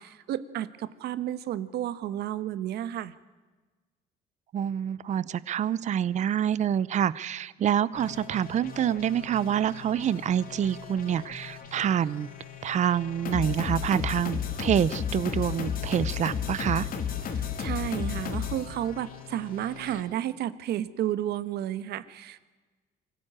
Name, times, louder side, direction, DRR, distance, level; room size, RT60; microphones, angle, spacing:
voice 1, 0.0-3.1 17.3-22.5, right 11 dB, 75° right, 14 dB, 1.3 m, -32 dB
voice 2, 4.5-12.3 12.6-16.9, right 9 dB, 45° right, 18 dB, 0.7 m, -27 dB
sound 1, 7.9-20.0, left 8 dB, 60° left, 2.6 m, -35 dB
24.5 x 16.0 x 8.9 m, 1.3 s
cardioid pair, 110°, 17 cm